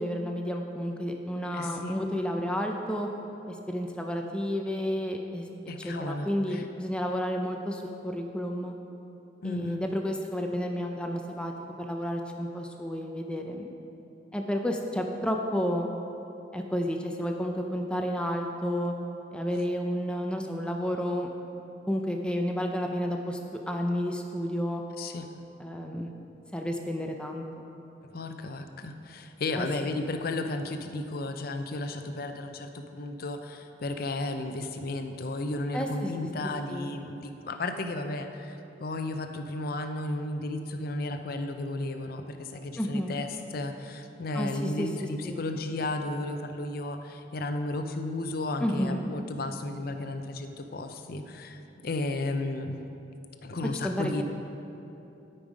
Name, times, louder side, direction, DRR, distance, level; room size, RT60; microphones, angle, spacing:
voice 1, 0.0-3.1 3.5-5.5 5.8-8.7 9.4-11.5 11.8-13.7 14.3-15.9 16.5-18.9 19.3-21.3 21.9-23.4 23.7-24.8 25.6-26.1 26.5-27.4 29.6-29.7 35.7-36.1 36.4-36.9 42.8-43.2 44.3-44.9 45.2-45.4 48.6-49.0 53.8-54.2, equal, 5° left, 2 dB, 0.5 m, -31 dB
voice 2, 1.5-2.0 5.7-6.6 9.4-9.9 25.0-25.3 28.0-52.8 53.4-54.2, left 2 dB, 55° left, 7 dB, 0.6 m, -34 dB
12.0 x 5.5 x 5.0 m, 3.0 s
head